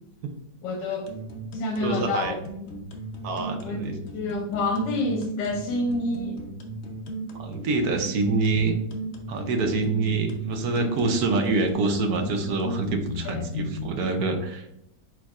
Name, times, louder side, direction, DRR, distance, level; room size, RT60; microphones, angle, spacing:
voice 1, 0.6-1.1 1.5-2.3 3.6-3.8 4.1-6.4 13.2-13.4, left 2 dB, 90° left, 1 dB, 1.4 m, -28 dB
sound 1, 1.1-13.9, equal, 60° left, 0.6 m, -36 dB
voice 2, 1.8-2.4 3.2-3.9 7.3-8.8 9.3-14.7, right 3 dB, 65° right, 5 dB, 1.1 m, -26 dB
4.6 x 4.4 x 2.4 m, 0.83 s
omnidirectional pair, 1.9 m